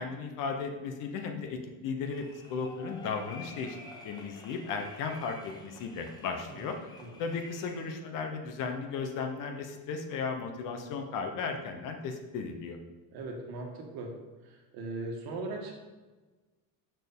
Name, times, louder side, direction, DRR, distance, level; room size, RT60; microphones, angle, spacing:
voice 1, 0.0-6.9 7.2-12.8, left 5 dB, 45° left, 5 dB, 0.8 m, -35 dB
sound 1, 2.0-7.9, left 2 dB, 10° left, 0.4 m, -50 dB
voice 2, 13.1-14.2 14.4-15.7, right 2 dB, 55° right, 1 dB, 1.4 m, -39 dB
6.4 x 4.5 x 5.3 m, 1.3 s
cardioid pair, 175°, 44 cm